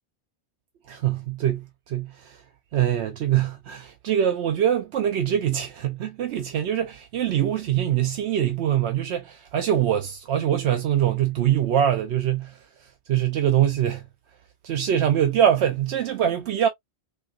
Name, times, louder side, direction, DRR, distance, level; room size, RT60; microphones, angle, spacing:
voice 1, 0.9-2.4 2.7-14.0 14.6-16.7, right 10 dB, 75° right, 0.9 m, -23 dB
4.2 x 2.3 x 2.4 m
omnidirectional pair, 1.1 m